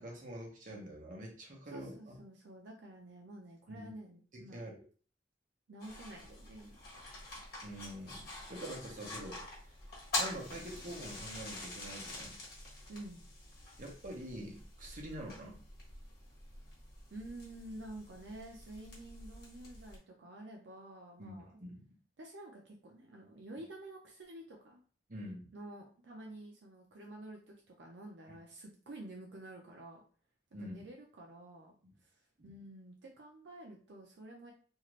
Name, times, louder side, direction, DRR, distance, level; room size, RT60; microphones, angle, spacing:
voice 1, 0.0-2.2 3.7-3.9 4.3-4.8 7.6-9.4 10.2-12.4 13.8-15.6 21.2-21.9 25.1-25.5 30.5-30.8 31.8-31.9 32.4-32.5, right 1 dB, 50° right, -1 dB, 0.9 m, -46 dB
voice 2, 1.7-4.7 5.7-6.8 12.9-13.2 17.1-21.6 22.2-24.8 25.5-30.0 30.6-31.7 32.0-34.5, right 1 dB, 80° right, 0 dB, 0.5 m, -50 dB
sound 1, 5.8-20.0, left 2 dB, 55° left, 1.3 m, -45 dB
2.8 x 2.4 x 3.0 m, 0.41 s
head